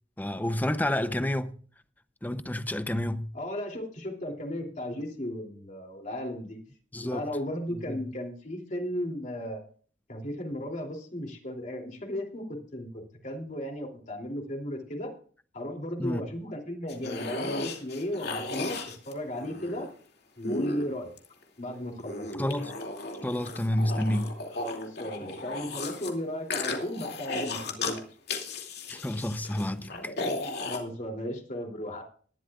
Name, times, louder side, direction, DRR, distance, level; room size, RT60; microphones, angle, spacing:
voice 1, 0.2-1.6 2.2-3.3 6.9-7.3 7.7-8.0 16.0-16.2 22.4-22.8 23.2-24.4 28.9-30.1, left 1 dB, 10° left, 0.6 m, -29 dB
voice 2, 3.3-6.6 7.0-9.6 10.1-15.1 15.5-19.9 20.4-21.1 21.6-22.4 24.6-28.1 29.9-30.3 30.6-32.0, left 1 dB, 45° left, 2.9 m, -35 dB
sound 1, 16.9-19.9 20.4-21.4 22.0-26.1 26.5-28.0 28.3-30.8, left 3 dB, 65° left, 2.5 m, -35 dB
19.5 x 12.0 x 2.4 m
head